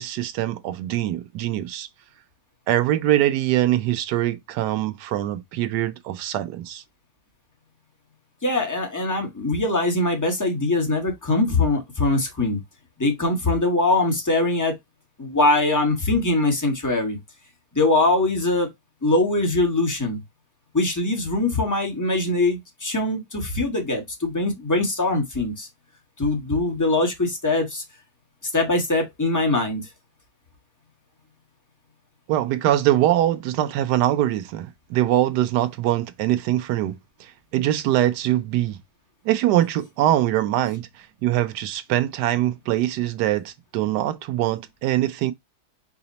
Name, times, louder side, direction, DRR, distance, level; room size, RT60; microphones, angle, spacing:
voice 1, 0.0-1.9 2.7-6.8 32.3-37.0 37.5-38.8 39.2-40.9 41.2-45.3, right 13 dB, 80° right, 1.2 m, -23 dB
voice 2, 8.4-12.6 13.0-14.7 15.2-17.2 17.7-18.7 19.0-20.2 20.7-25.7 26.2-27.8 28.5-29.8, left 2 dB, 15° left, 0.7 m, -22 dB
4.9 x 2.0 x 4.0 m
omnidirectional pair, 1.8 m